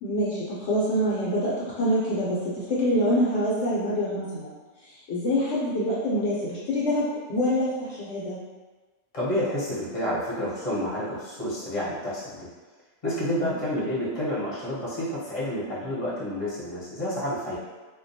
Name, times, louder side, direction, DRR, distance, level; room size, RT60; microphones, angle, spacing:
voice 1, 0.0-1.5 1.8-4.6 5.1-8.4 13.4-13.5, equal, 65° left, -7 dB, 0.8 m, -25 dB
voice 2, 9.1-12.5 13.0-17.6, left 1 dB, 30° left, -8 dB, 0.7 m, -29 dB
2.3 x 2.2 x 2.6 m, 1.3 s
omnidirectional pair, 1.4 m